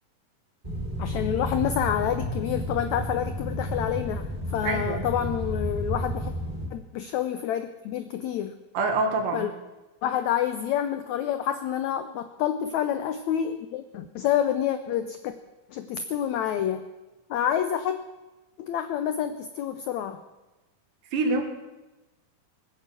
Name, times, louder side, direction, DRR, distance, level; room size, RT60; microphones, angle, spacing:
sound 1, 0.6-6.7, equal, 10° right, 4.2 m, -31 dB
voice 1, 1.0-4.2 4.5-6.3 6.7-8.5 9.3-9.5 10.0-15.3 15.7-16.9 17.3-18.0 18.6-20.2, left 10 dB, 85° left, 10 dB, 1.6 m, -28 dB
voice 2, 4.6-5.0 8.7-9.5 21.1-21.4, right 3 dB, 65° right, 5 dB, 3.2 m, -25 dB
20.0 x 9.5 x 7.6 m, 1.1 s
omnidirectional pair, 4.2 m